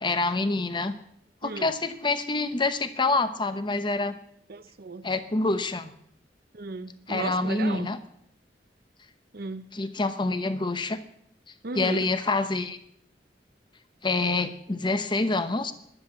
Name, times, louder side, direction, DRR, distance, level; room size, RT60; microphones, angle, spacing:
voice 1, 0.0-1.0 1.4-4.2 5.0-5.9 7.1-8.0 9.7-11.0 11.7-12.8 14.0-15.7, left 3 dB, 25° left, 10 dB, 0.9 m, -26 dB
voice 2, 1.4-1.7 4.5-5.1 6.5-7.9 9.3-9.7 11.6-12.1, right 3 dB, 60° right, 13 dB, 0.8 m, -35 dB
11.0 x 10.5 x 7.2 m, 0.71 s
head